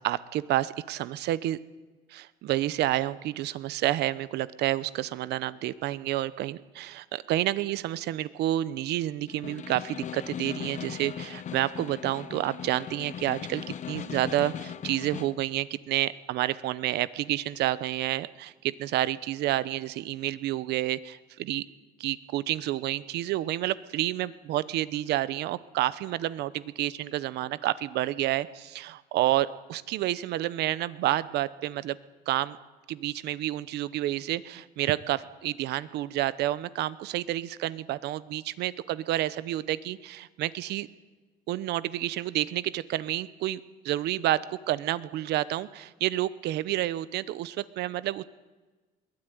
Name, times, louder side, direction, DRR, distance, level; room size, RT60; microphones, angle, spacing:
voice 1, 0.0-1.6 2.1-21.7 22.0-32.0 32.3-32.6 32.9-40.9 41.5-43.6 43.8-48.2, right 14 dB, 80° right, 17 dB, 0.9 m, -29 dB
Snare drum, 9.3-15.4, left 9 dB, 45° left, 1.1 m, -39 dB
22.0 x 17.5 x 9.6 m, 1.3 s
cardioid pair, 110°, 17 cm